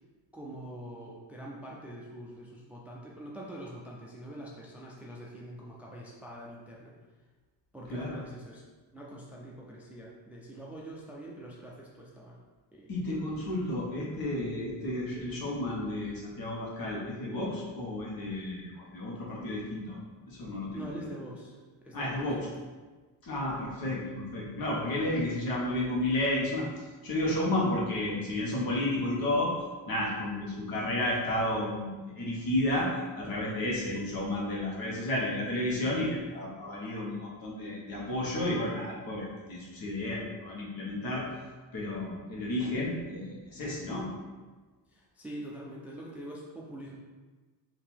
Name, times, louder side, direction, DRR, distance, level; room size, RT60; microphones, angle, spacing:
voice 1, 0.3-6.9 7.7-8.6 8.9-12.4 12.7-13.0 20.7-21.6 21.8-22.5 44.9-47.0, right 1 dB, 5° right, -4 dB, 0.4 m, -44 dB
voice 2, 12.9-20.0 20.3-20.9 21.9-22.5 23.2-29.5 29.9-41.3 41.7-44.1, left 1 dB, 60° left, -4 dB, 1.4 m, -32 dB
3.6 x 2.9 x 4.5 m, 1.3 s
cardioid pair, 140°, 41 cm